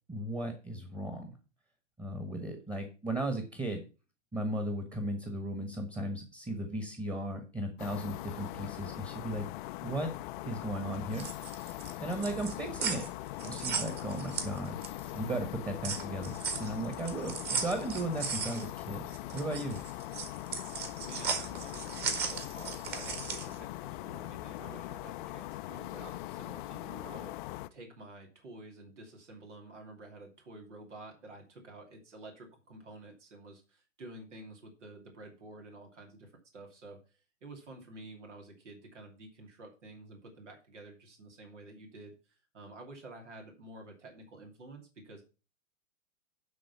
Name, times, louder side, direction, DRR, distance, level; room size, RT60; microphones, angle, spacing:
voice 1, 0.1-1.3 2.0-3.8 4.3-9.5 9.8-10.1 10.4-11.3 11.6-13.0 13.4-14.8 15.1-19.0 19.3-19.8, right 1 dB, 10° right, 7 dB, 1.5 m, -36 dB
sound 1, 7.8-27.7, left 17 dB, 45° left, 0.6 m, -41 dB
sound 2, 11.0-15.1 15.5-23.6, right 5 dB, 25° right, 1.8 m, -37 dB
voice 2, 21.0-27.3 27.7-45.2, right 2 dB, 75° right, 2 dB, 2.7 m, -50 dB
11.0 x 3.9 x 6.9 m, 0.33 s
hypercardioid pair, 110°, 36 cm